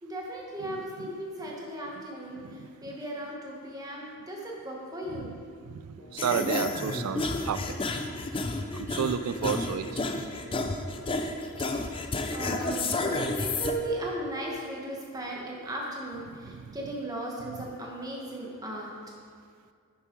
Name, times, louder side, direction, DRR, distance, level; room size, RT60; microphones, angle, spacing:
voice 1, 0.0-5.3 11.7-12.0 12.3-18.9, right 1 dB, 15° right, -2 dB, 1.4 m, -37 dB
voice 2, 0.6-1.2 1.5-1.6 2.4-2.7 5.1-5.8 6.1-7.6 7.9-8.0 8.7-10.0 16.5-16.7 17.5-17.7, right 7 dB, 90° right, 11 dB, 0.4 m, -32 dB
sound 1, 6.0-14.6, left 1 dB, 60° left, 1.0 m, -52 dB
sound 2, 6.2-13.7, left 2 dB, 25° left, 0.5 m, -31 dB
10.5 x 7.0 x 4.6 m, 2.2 s
head